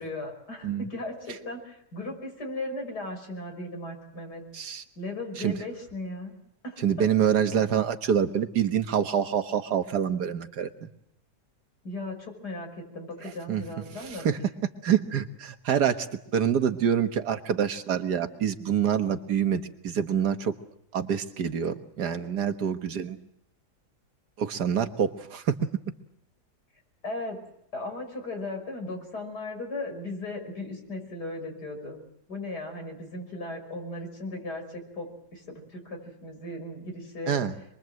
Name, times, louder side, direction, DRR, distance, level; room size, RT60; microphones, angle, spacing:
voice 1, 0.0-4.4 5.0-6.4 6.6-7.1 11.8-14.3 27.0-27.4 27.7-32.0 32.3-37.4, left 2 dB, 80° left, 3 dB, 6.3 m, -37 dB
voice 2, 6.8-10.9 13.2-13.6 14.0-14.4 14.8-16.1 16.3-20.6 20.9-23.2 24.4-25.6 37.3-37.5, right 8 dB, 85° right, 8 dB, 2.0 m, -26 dB
26.5 x 22.5 x 7.7 m, 0.78 s
omnidirectional pair, 1.7 m